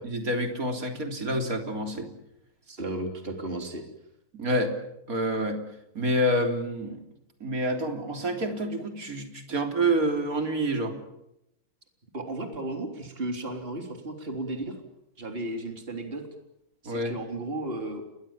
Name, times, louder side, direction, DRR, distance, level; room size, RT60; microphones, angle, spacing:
voice 1, 0.0-2.1 4.3-4.8 5.1-5.6 6.0-7.0 7.4-11.0 16.9-17.2, right 1 dB, 45° right, 5 dB, 3.8 m, -28 dB
voice 2, 2.7-3.8 12.1-14.7 15.2-16.2 16.8-18.0, right 2 dB, 25° right, 5 dB, 3.7 m, -34 dB
29.5 x 22.5 x 7.3 m, 0.82 s
omnidirectional pair, 2.2 m